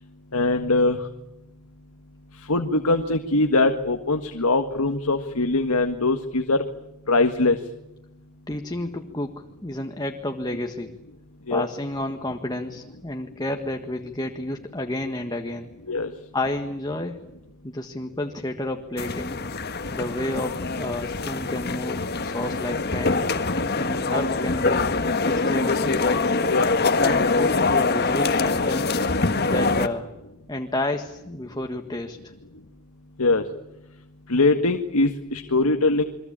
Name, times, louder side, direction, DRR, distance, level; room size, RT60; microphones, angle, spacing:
voice 1, 0.3-1.0 2.5-6.6 7.1-7.6 11.5-11.6 15.9-16.1 26.5-26.7 33.2-33.4 34.3-36.0, left 2 dB, 85° left, 6 dB, 1.7 m, -21 dB
voice 2, 8.5-10.9 11.5-15.7 16.3-17.4 17.6-19.4 19.9-23.2 23.8-24.9 25.2-26.4 27.0-29.0 29.5-30.1 30.5-32.3, left 1 dB, 20° left, 5 dB, 1.5 m, -30 dB
sound 1, 19.0-29.9, left 3 dB, 45° left, 1.6 m, -24 dB
29.5 x 23.5 x 8.8 m, 0.91 s
head